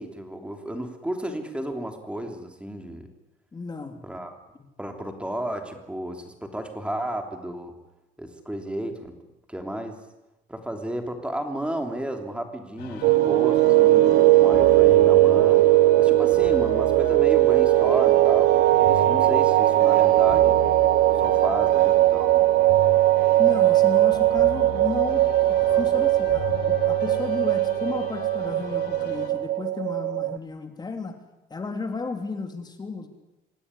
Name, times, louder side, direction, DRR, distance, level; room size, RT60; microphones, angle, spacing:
voice 1, 0.0-3.1 4.0-4.3 4.8-7.8 8.2-9.2 9.5-10.0 10.5-15.7 16.0-20.6 21.1-22.5 25.7-25.9, right 1 dB, 5° right, 5 dB, 3.2 m, -33 dB
voice 2, 3.5-4.0 23.4-31.2 31.5-33.1, left 4 dB, 25° left, 6 dB, 3.0 m, -33 dB
sound 1, 12.8-29.3, left 8 dB, 85° left, 4.2 m, -37 dB
sound 2, 13.0-30.4, right 16 dB, 85° right, 0.9 m, -19 dB
25.5 x 17.0 x 9.9 m, 0.96 s
cardioid pair, 110°, 17 cm